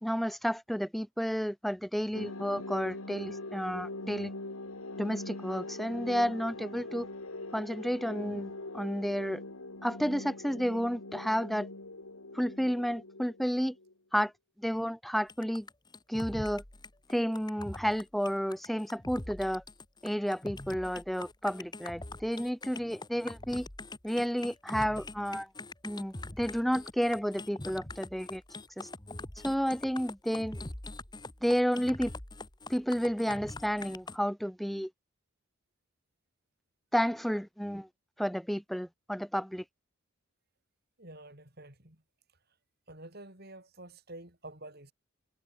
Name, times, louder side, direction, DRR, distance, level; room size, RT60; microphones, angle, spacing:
voice 1, 0.0-4.3 5.0-7.1 7.5-9.4 9.8-11.7 12.3-13.8 14.1-14.3 14.6-15.7 16.1-16.6 17.1-19.6 20.0-23.7 24.0-25.5 25.8-28.4 28.8-28.9 29.4-30.7 31.4-32.1 32.7-34.9 36.9-37.9 38.2-39.6, equal, ahead, 0.8 m, -31 dB
sound 1, 2.1-13.9, left 2 dB, 80° left, 3.2 m, -42 dB
sound 2, 15.3-34.2, left 2 dB, 20° left, 1.7 m, -43 dB
voice 2, 41.0-42.0 42.9-44.9, right 2 dB, 45° right, 4.9 m, -49 dB
head